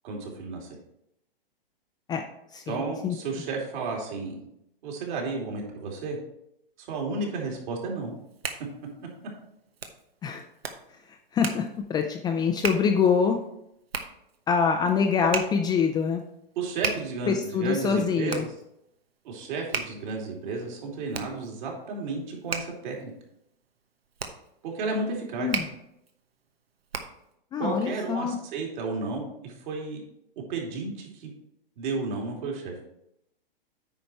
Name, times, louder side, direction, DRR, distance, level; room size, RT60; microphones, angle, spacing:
voice 1, 0.0-0.7 2.7-4.4 4.8-6.2 6.8-8.2 16.6-18.5 19.2-23.1 24.6-25.5 27.6-30.0 30.5-31.3 31.8-32.7, right 3 dB, 55° right, 0 dB, 2.8 m, -32 dB
voice 2, 2.5-3.2 10.2-10.4 11.3-13.4 14.5-16.2 17.3-18.4 25.4-25.7 27.5-28.4, left 6 dB, 15° left, 4 dB, 0.4 m, -25 dB
Hands, 8.0-27.3, right 5 dB, 85° right, 1.1 m, -38 dB
9.2 x 5.1 x 4.3 m, 0.79 s
hypercardioid pair, 120°, 29 cm